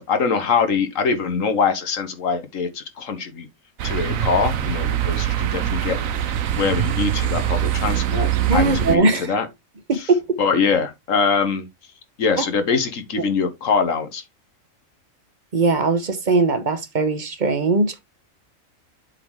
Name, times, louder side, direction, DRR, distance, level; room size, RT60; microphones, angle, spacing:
voice 1, 0.0-3.5 3.8-9.5 9.9-10.1 10.4-11.7 12.2-14.2, left 5 dB, 70° left, 1.6 m, -23 dB
sound 1, 3.8-9.0, right 11 dB, 80° right, 1.2 m, -23 dB
voice 2, 8.5-9.3 9.9-10.4 15.5-18.0, right 3 dB, 35° right, 1.1 m, -20 dB
7.6 x 4.0 x 4.6 m
omnidirectional pair, 1.4 m